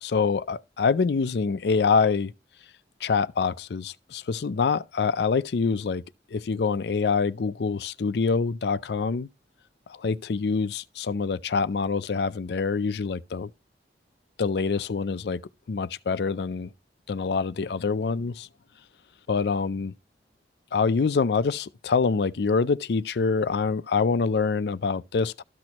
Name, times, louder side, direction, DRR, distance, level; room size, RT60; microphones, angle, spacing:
voice 1, 0.0-2.3 3.0-6.0 6.3-9.3 9.9-13.5 14.4-15.4 15.7-16.7 17.1-18.5 19.3-19.9 20.7-25.4, left 5 dB, 70° left, 0.4 m, -25 dB
13.0 x 6.1 x 2.9 m
head